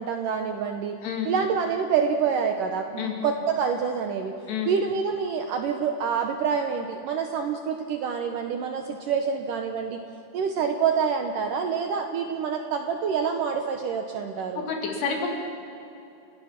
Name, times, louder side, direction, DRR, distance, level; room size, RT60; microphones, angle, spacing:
voice 1, 0.0-1.0 1.3-4.4 4.7-10.0 10.3-14.7, right 6 dB, 75° right, 4 dB, 2.1 m, -27 dB
voice 2, 14.5-15.3, left 6 dB, 80° left, 1 dB, 4.6 m, -29 dB
29.5 x 17.0 x 5.9 m, 2.7 s
omnidirectional pair, 4.7 m